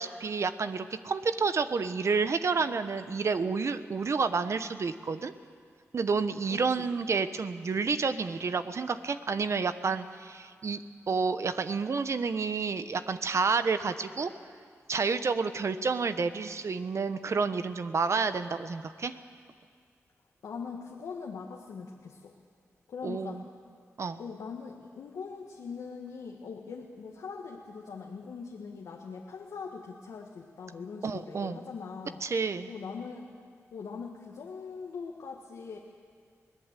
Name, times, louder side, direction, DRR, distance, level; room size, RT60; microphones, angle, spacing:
voice 1, 0.0-5.3 5.9-14.3 14.9-19.1 23.0-23.4 24.0-24.2 31.0-31.6 32.2-32.7, right 4 dB, 60° right, 11 dB, 1.0 m, -30 dB
voice 2, 6.5-6.9 20.4-22.3 22.9-23.4 24.2-32.2 32.7-33.3 33.7-35.8, left 5 dB, 90° left, 0 dB, 1.6 m, -41 dB
22.5 x 18.0 x 8.3 m, 2.1 s
cardioid pair, 70°, 6 cm